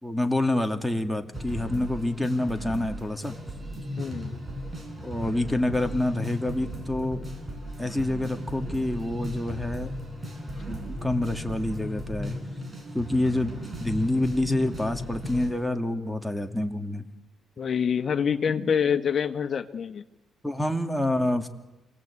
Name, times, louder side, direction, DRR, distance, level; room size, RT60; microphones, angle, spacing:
voice 1, 0.0-3.4 5.0-7.2 7.8-10.0 10.7-12.3 12.9-17.0 20.4-21.5, left 1 dB, ahead, 4 dB, 2.4 m, -27 dB
sound 1, 1.3-15.5, equal, 20° right, 6.1 m, -36 dB
voice 2, 4.0-4.4 17.6-20.0, left 7 dB, 50° left, 9 dB, 1.7 m, -26 dB
28.5 x 19.0 x 8.6 m, 0.98 s
cardioid pair, 90°, 0 cm